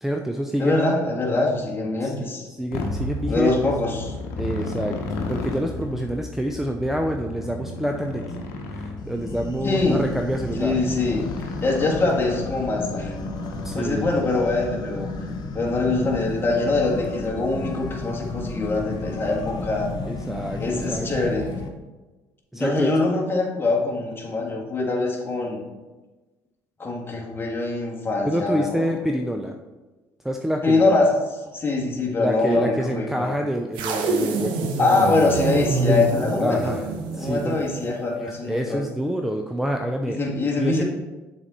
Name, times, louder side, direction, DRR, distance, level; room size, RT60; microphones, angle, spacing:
voice 1, 0.0-0.8 2.0-3.6 4.4-4.9 5.3-8.2 8.7-10.8 13.6-14.0 20.1-21.1 22.5-22.9 28.2-29.5 30.2-30.9 32.2-34.9 35.8-36.1 36.4-36.8 37.2-37.6 38.2-40.2 40.6-40.8, equal, 5° right, 3 dB, 0.5 m, -27 dB
voice 2, 0.6-2.5 3.3-4.1 9.6-10.1 10.6-13.1 13.7-15.1 15.5-19.9 20.6-21.5 22.5-25.7 26.8-28.9 30.6-31.2 31.5-33.3 34.8-36.8 37.2-38.8 40.1-40.8, left 3 dB, 25° left, -2 dB, 1.9 m, -23 dB
Motorcycle, 2.7-14.8, left 2 dB, 90° left, 0.8 m, -34 dB
sound 1, 9.0-21.7, left 3 dB, 60° left, 0.9 m, -32 dB
sound 2, 33.7-38.0, right 3 dB, 75° right, 0.8 m, -26 dB
7.0 x 4.3 x 4.1 m, 1.2 s
supercardioid pair, 70°, 8 cm